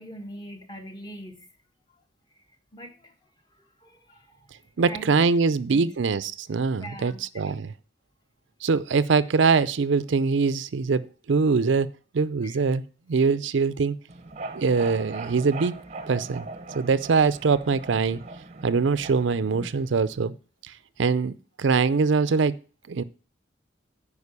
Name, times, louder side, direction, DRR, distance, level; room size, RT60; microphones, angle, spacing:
voice 1, 0.0-1.5 2.0-2.1 2.3-2.4 2.7-3.1 3.5-5.9 6.8-7.6 12.4-12.6, right 1 dB, 20° left, 1.4 m, -43 dB
voice 2, 4.8-7.7 8.6-11.9 12.1-12.8 13.1-14.0 14.5-15.8 16.1-16.5 16.7-18.2 18.6-20.3 20.6-20.7 21.0-22.6 22.9-23.0, right 4 dB, 70° right, 0.5 m, -23 dB
sound 1, 14.1-20.2, right 3 dB, 35° right, 0.7 m, -40 dB
9.7 x 5.0 x 6.7 m
head